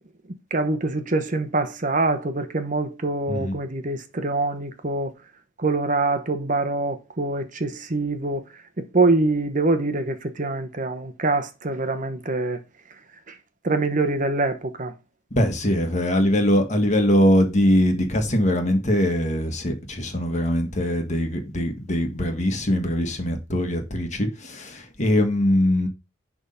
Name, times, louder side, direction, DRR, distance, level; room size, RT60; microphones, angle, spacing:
voice 1, 0.5-5.1 5.6-8.4 8.8-12.6 13.6-14.9, right 2 dB, 40° right, 1.0 m, -24 dB
voice 2, 15.3-25.9, equal, 35° left, 1.7 m, -22 dB
11.0 x 3.6 x 5.5 m
head